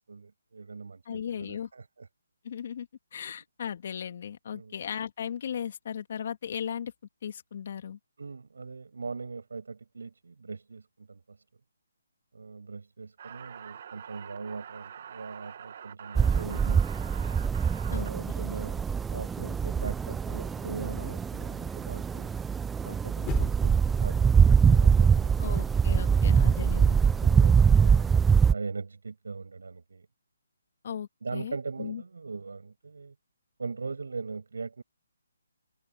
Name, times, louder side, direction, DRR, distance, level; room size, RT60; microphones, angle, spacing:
voice 1, 0.0-2.1 4.5-4.8 8.2-11.4 12.3-17.2 17.9-22.3 22.8-25.4 26.2-28.1 28.5-30.1 31.2-33.1 33.6-34.8, right 4 dB, 75° right, 6.4 m, -40 dB
voice 2, 1.1-1.7 2.4-6.9 7.2-8.0 17.9-18.1 25.4-27.0 30.8-32.0, left 8 dB, 50° left, 2.8 m, -36 dB
sound 1, 13.2-18.1, right 8 dB, 50° right, 1.6 m, -45 dB
sound 2, 16.1-28.5, right 6 dB, 10° right, 0.5 m, -23 dB
sound 3, 23.2-23.9 24.4-25.2 25.5-25.6, left 16 dB, 15° left, 5.4 m, -39 dB
figure-of-eight pair, 150°, 0 cm